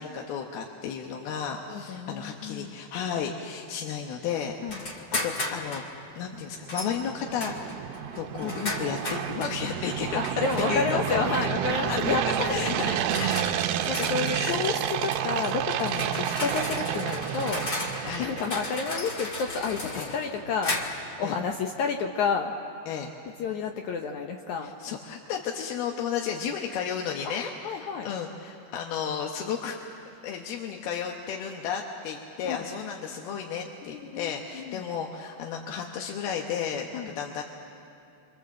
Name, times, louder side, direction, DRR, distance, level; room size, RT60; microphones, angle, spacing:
voice 1, 0.0-5.8 6.2-7.5 8.2-10.2 10.7-11.2 11.9-13.4 14.3-14.6 16.0-16.2 18.0-18.3 19.9-20.1 21.2-21.4 22.9-23.1 24.6-29.8 30.2-37.4, left 7 dB, 70° left, 1 dB, 2.9 m, -33 dB
voice 2, 1.7-2.7 4.6-4.8 8.4-8.6 10.1-12.9 13.9-17.6 18.2-22.5 23.4-24.7 27.2-28.1 32.4-32.7 33.9-34.8 36.9-37.1, left 5 dB, 85° left, 3 dB, 1.6 m, -30 dB
sound 1, 4.7-5.9 6.7-6.9 7.4-9.6 10.4-10.9 12.0-12.2 12.8-21.1, left 2 dB, 35° left, 1.7 m, -35 dB
sound 2, 6.5-18.8, right 10 dB, 75° right, 2.4 m, -30 dB
28.5 x 26.0 x 7.6 m, 2.8 s
omnidirectional pair, 4.9 m